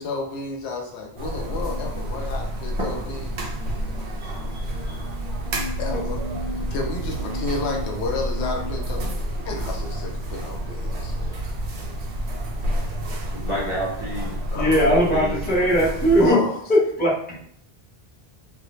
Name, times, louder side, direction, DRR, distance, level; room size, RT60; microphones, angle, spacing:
voice 1, 0.0-3.5 5.8-6.2 6.7-9.1 9.4-11.3 14.5-14.8 16.2-16.6, left 3 dB, 85° left, 1 dB, 0.9 m, -31 dB
sound 1, 1.2-16.3, equal, 85° right, 0.9 m, -29 dB
voice 2, 4.2-5.1 5.9-6.1 6.4-6.7 10.3-10.4 13.3-15.5, equal, 35° right, -6 dB, 0.6 m, -31 dB
voice 3, 14.5-16.4 16.7-17.2, equal, 10° left, -6 dB, 0.5 m, -19 dB
2.0 x 2.0 x 3.0 m, 0.68 s
omnidirectional pair, 1.1 m